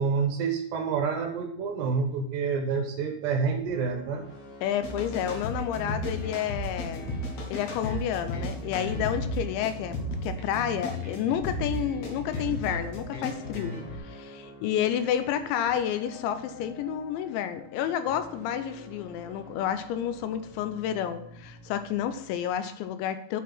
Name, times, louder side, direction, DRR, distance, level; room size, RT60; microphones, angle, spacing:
voice 1, 0.0-4.2, right 5 dB, 75° right, 3 dB, 2.9 m, -28 dB
sound 1, 3.7-22.8, left 2 dB, 50° left, 1.7 m, -48 dB
voice 2, 4.6-7.1 7.5-10.0 10.2-13.8 14.0-23.4, left 9 dB, 85° left, 10 dB, 2.9 m, -30 dB
sound 2, 4.8-14.0, left 1 dB, 65° left, 3.3 m, -34 dB
8.2 x 4.5 x 6.0 m, 0.72 s
omnidirectional pair, 5.3 m